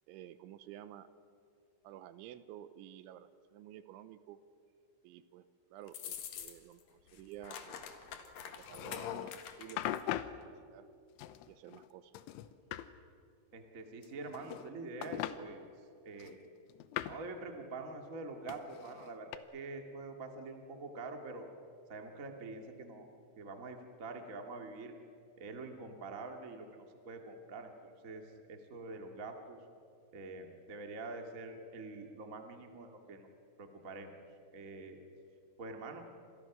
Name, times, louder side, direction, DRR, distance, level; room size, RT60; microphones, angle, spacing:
voice 1, 0.1-1.1 1.8-4.4 5.0-7.8 8.6-10.9 11.5-12.1, right 11 dB, 80° right, 13 dB, 3.1 m, -52 dB
sound 1, 5.9-6.8 7.1-10.0, left 8 dB, 60° left, 2.6 m, -46 dB
sound 2, 8.6-9.4 9.8-10.4 11.2-11.9 12.1-12.9 14.0-14.7 15.0-15.4 16.2-17.3 18.5-19.4, left 13 dB, 85° left, 3.2 m, -40 dB
voice 2, 13.5-15.6 16.0-16.4 17.0-21.5 21.9-23.1 23.4-24.9 25.4-29.6 30.1-33.3 33.6-34.1 34.5-35.0 35.6-36.0, right 3 dB, 45° right, 4 dB, 1.0 m, -45 dB
29.5 x 26.5 x 6.1 m, 2.4 s
omnidirectional pair, 5.6 m